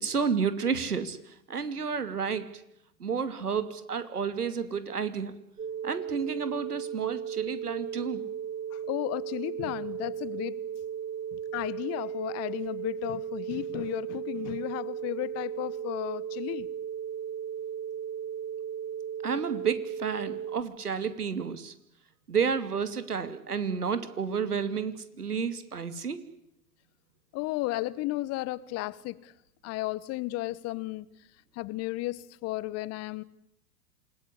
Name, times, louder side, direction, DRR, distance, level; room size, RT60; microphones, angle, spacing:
voice 1, 0.0-2.5 3.0-5.3 5.8-8.2 19.2-21.7 22.3-26.3, right 6 dB, 85° right, 2.7 m, -31 dB
sound 1, 5.6-20.6, right 8 dB, 25° right, 4.5 m, -36 dB
voice 2, 8.7-10.6 11.3-16.7 27.3-29.3 29.6-31.1 31.5-33.2, left 18 dB, 35° left, 1.2 m, -34 dB
27.5 x 20.0 x 10.0 m
figure-of-eight pair, 100°, 45 cm